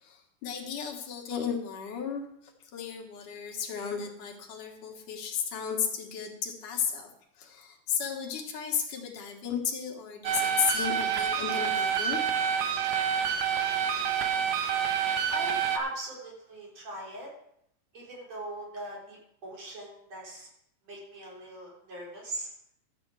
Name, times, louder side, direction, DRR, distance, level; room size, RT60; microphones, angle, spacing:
voice 1, 0.0-2.2 2.7-7.1 7.4-12.5, left 7 dB, 80° left, 2 dB, 3.1 m, -34 dB
sound 1, 10.2-15.8, right 7 dB, 75° right, 2.4 m, -28 dB
voice 2, 15.3-17.3 17.9-20.5 20.9-22.5, right 1 dB, 55° right, -3 dB, 5.0 m, -40 dB
13.0 x 8.7 x 4.8 m, 0.73 s
omnidirectional pair, 3.6 m